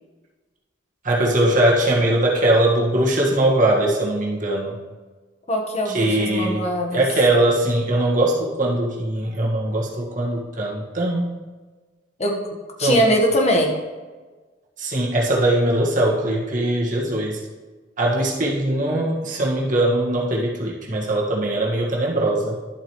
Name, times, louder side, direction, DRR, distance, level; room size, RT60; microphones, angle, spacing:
voice 1, 1.0-4.8 5.9-6.6 6.9-11.4 12.8-13.0 14.8-17.4 18.0-22.6, right 1 dB, 45° right, -2 dB, 1.7 m, -21 dB
voice 2, 5.5-7.0 12.2-12.4 12.8-13.7, equal, 40° left, 1 dB, 1.3 m, -21 dB
11.5 x 7.7 x 3.1 m, 1.3 s
head